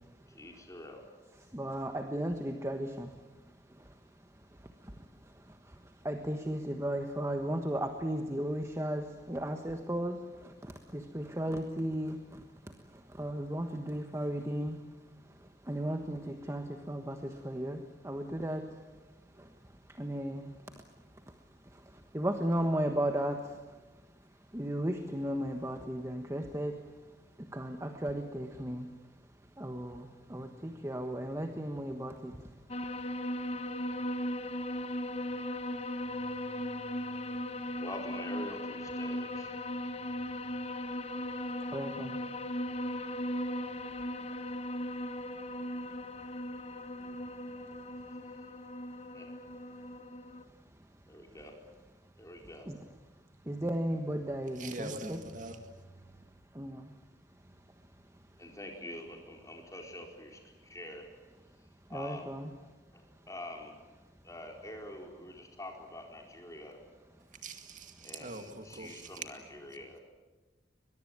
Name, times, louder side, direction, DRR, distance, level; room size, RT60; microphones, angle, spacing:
voice 1, 0.3-1.0 37.8-39.7 49.1-49.3 51.1-51.6 52.2-52.7 58.4-61.1 61.9-63.8 64.2-66.8 68.0-70.0, left 1 dB, 20° left, 2 dB, 4.5 m, -46 dB
voice 2, 1.4-3.2 3.7-3.9 4.5-14.9 15.2-18.8 19.3-20.6 21.3-23.8 24.5-27.0 27.4-29.0 29.6-32.6 36.1-37.1 37.5-37.7 41.7-42.3 47.0-47.2 52.7-52.8 53.4-55.2 56.5-56.9 61.9-62.5, right 1 dB, 15° right, 5 dB, 1.3 m, -36 dB
sound 1, 32.7-50.4, left 1 dB, 35° left, 1.0 m, -38 dB
voice 3, 54.5-55.6 67.3-69.2, right 2 dB, 45° right, 7 dB, 2.1 m, -43 dB
22.0 x 22.0 x 9.6 m, 1.2 s
head